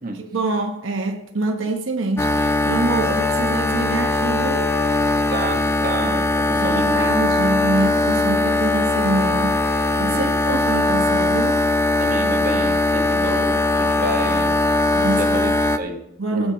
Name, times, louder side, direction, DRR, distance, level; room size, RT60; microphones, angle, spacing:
voice 1, 0.2-4.7 6.6-11.7 14.9-15.3 16.2-16.5, right 2 dB, 90° right, 0.9 m, -25 dB
sound 1, 2.2-15.8, left 2 dB, 15° left, 0.5 m, -20 dB
voice 2, 5.3-7.1 7.4-7.5 8.4-8.5 10.1-10.3 12.0-14.6 15.2-16.0 16.3-16.5, right 2 dB, 45° right, 1.4 m, -29 dB
18.0 x 7.6 x 3.0 m
head